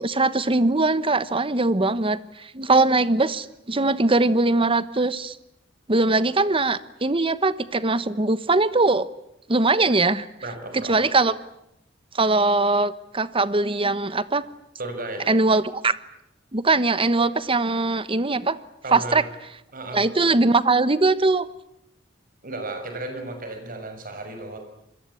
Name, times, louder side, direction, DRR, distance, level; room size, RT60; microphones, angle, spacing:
voice 1, 0.0-5.4 5.9-9.1 9.5-10.2 10.7-11.4 12.1-14.4 15.3-15.9 16.5-18.6 18.9-19.2 19.9-21.5, right 3 dB, 30° right, 15 dB, 1.1 m, -21 dB
voice 2, 10.4-11.0 14.8-15.3 18.8-19.2 19.7-20.0 22.4-24.6, right 2 dB, 50° right, 6 dB, 6.6 m, -34 dB
27.0 x 22.0 x 8.6 m, 0.83 s
head